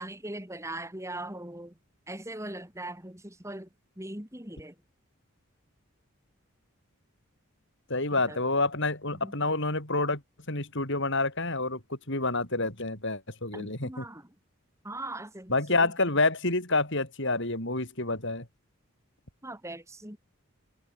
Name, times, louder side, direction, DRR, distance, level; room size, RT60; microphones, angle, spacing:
voice 1, 0.0-1.7 2.1-3.7 4.0-4.7 8.2-8.4 9.2-9.3 13.5-14.3 14.8-15.9 19.4-20.2, right 1 dB, 15° right, 4.8 m, -40 dB
voice 2, 7.9-10.2 10.5-14.0 15.5-18.5, left 2 dB, 55° left, 6.3 m, -28 dB
head